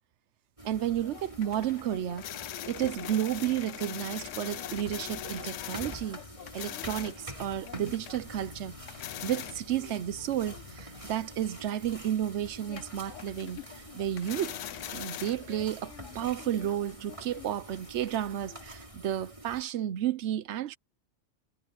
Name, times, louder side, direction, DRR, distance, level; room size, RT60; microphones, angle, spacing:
sound 1, 0.6-19.6, right 1 dB, 25° right, 5.5 m, -47 dB
voice 1, 0.6-6.2 6.5-8.7 9.2-14.6 14.9-20.8, right 11 dB, 70° right, 1.0 m, -32 dB
sound 2, 0.8-18.7, left 12 dB, 85° left, 1.0 m, -43 dB
omnidirectional pair, 1.3 m